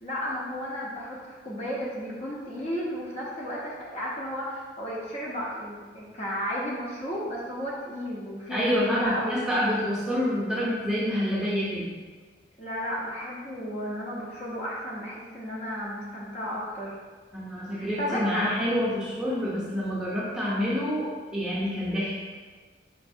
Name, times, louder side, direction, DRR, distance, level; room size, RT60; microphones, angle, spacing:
voice 1, 0.0-9.4 12.6-17.0 17.7-18.4, equal, 35° left, -6 dB, 0.7 m, -33 dB
voice 2, 8.5-11.9 17.3-22.2, equal, 5° right, -8 dB, 0.7 m, -27 dB
5.3 x 2.5 x 2.6 m, 1.4 s
head